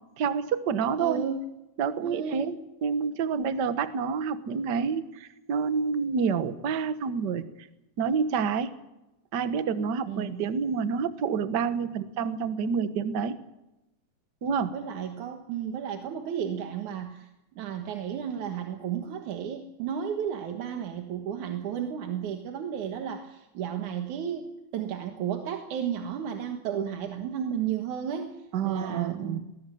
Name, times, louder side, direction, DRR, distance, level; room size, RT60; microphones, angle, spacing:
voice 1, 0.2-1.2 1.8-2.6 2.8-7.4 8.0-8.7 9.3-13.3 14.4-14.7 28.5-29.4, right 6 dB, 50° right, 11 dB, 1.4 m, -28 dB
voice 2, 1.0-1.4 2.0-2.5 10.1-10.4 14.7-17.3 17.6-28.4 28.6-29.4, right 8 dB, 85° right, 5 dB, 2.9 m, -33 dB
20.0 x 19.0 x 7.7 m, 0.94 s
omnidirectional pair, 3.4 m